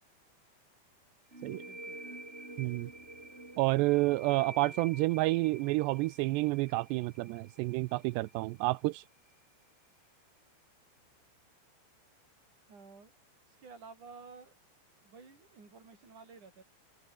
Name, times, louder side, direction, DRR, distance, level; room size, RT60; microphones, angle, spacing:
sound 1, 1.3-8.7, right 2 dB, 10° right, 4.5 m, -49 dB
voice 1, 1.6-2.0 12.7-13.1 13.5-14.6 15.0-16.6, right 4 dB, 40° right, 8.5 m, -52 dB
voice 2, 2.6-2.9 3.6-9.0, right 21 dB, 85° right, 2.4 m, -29 dB
open air
omnidirectional pair, 5.6 m